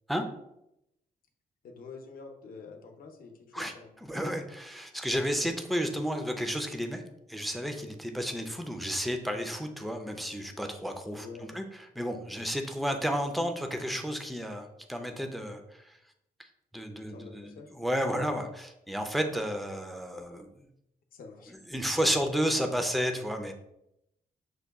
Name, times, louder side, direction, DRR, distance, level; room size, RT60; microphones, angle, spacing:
voice 1, 1.6-3.9 11.1-11.6 17.0-17.7 21.1-21.5, left 4 dB, 70° left, 3 dB, 0.7 m, -47 dB
voice 2, 4.1-7.0 7.3-11.3 11.5-11.6 12.0-16.0 16.7-20.5 21.7-23.5, equal, ahead, 5 dB, 0.4 m, -32 dB
6.5 x 2.2 x 3.5 m, 0.82 s
wide cardioid pair, 140°, 15 cm